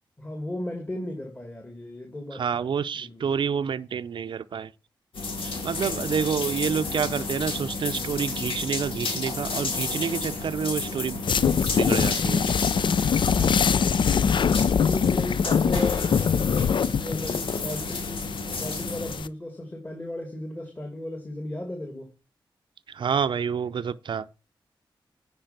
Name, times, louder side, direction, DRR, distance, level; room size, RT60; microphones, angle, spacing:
voice 1, 0.2-2.7 2.9-3.3 14.7-22.1, left 1 dB, 20° left, 2.3 m, -36 dB
voice 2, 2.3-4.7 5.4-12.5 12.8-12.9 22.9-24.3, right 7 dB, 65° right, 0.5 m, -28 dB
sound 1, 5.1-19.2, left 3 dB, 85° left, 2.3 m, -32 dB
sound 2, 11.2-19.3, left 6 dB, 65° left, 0.5 m, -24 dB
9.0 x 5.6 x 5.8 m
cardioid pair, 70°, 9 cm